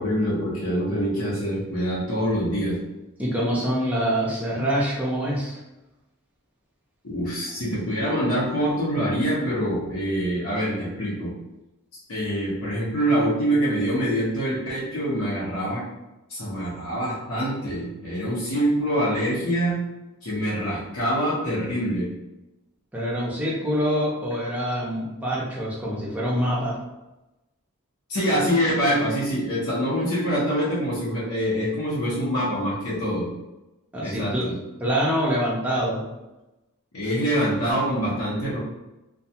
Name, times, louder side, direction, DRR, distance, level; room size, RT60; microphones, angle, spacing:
voice 1, 0.0-2.8 7.0-11.3 12.1-15.8 16.3-19.8 20.2-22.1 28.1-33.3 34.0-34.5 36.9-38.6, equal, 70° left, -8 dB, 0.8 m, -25 dB
voice 2, 3.2-5.6 22.9-26.8 33.9-34.5 34.8-36.0, equal, 5° right, -6 dB, 0.6 m, -25 dB
2.3 x 2.2 x 2.8 m, 0.99 s
head